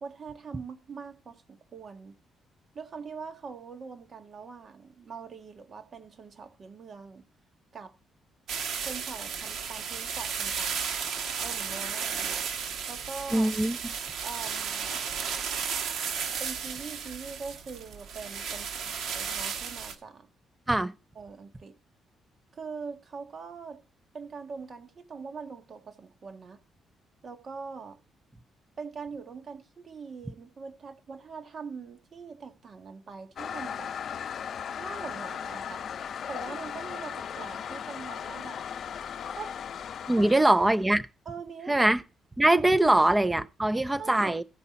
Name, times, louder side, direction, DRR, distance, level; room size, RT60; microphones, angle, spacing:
voice 1, 0.0-2.1 2.7-7.3 7.7-7.9 8.8-11.0 11.4-12.5 12.9-13.5 14.2-15.0 16.4-20.3 21.1-21.8 22.5-23.8 24.1-26.6 27.2-28.0 28.8-33.9 34.8-35.9 36.3-38.6 39.4-39.6 40.1-40.3 41.2-42.0 42.8-42.9 44.0-44.3, right 5 dB, 45° right, 1.5 m, -42 dB
sound 1, 8.5-20.0, right 6 dB, 75° right, 1.4 m, -34 dB
voice 2, 13.3-13.8 20.7-20.9 40.1-41.0 41.7-42.0 42.4-44.4, right 1 dB, 15° right, 0.7 m, -22 dB
Toilet flush, 33.4-40.8, left 8 dB, 60° left, 0.6 m, -37 dB
15.5 x 5.4 x 4.2 m
cardioid pair, 90°, 0 cm